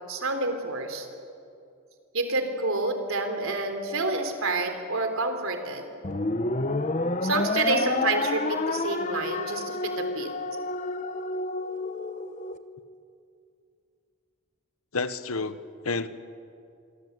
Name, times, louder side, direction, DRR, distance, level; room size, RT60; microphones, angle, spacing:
voice 1, 0.1-1.1 2.1-5.8 7.2-10.3, right 2 dB, 75° right, 6 dB, 3.6 m, -28 dB
sound 1, 6.0-12.6, left 2 dB, 35° left, 1.0 m, -29 dB
voice 2, 14.9-16.1, left 3 dB, 85° left, 12 dB, 1.2 m, -30 dB
26.0 x 23.5 x 8.2 m, 2.5 s
head